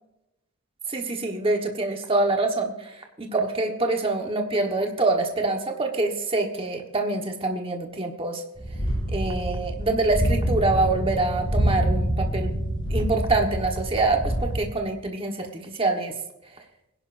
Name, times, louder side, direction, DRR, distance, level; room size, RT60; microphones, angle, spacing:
voice 1, 0.9-8.4 9.1-12.6 12.9-16.2, right 2 dB, 25° right, 3 dB, 1.3 m, -25 dB
sound 1, 8.6-14.6, right 1 dB, 20° left, 5.1 m, -26 dB
21.5 x 11.0 x 2.6 m, 0.92 s
head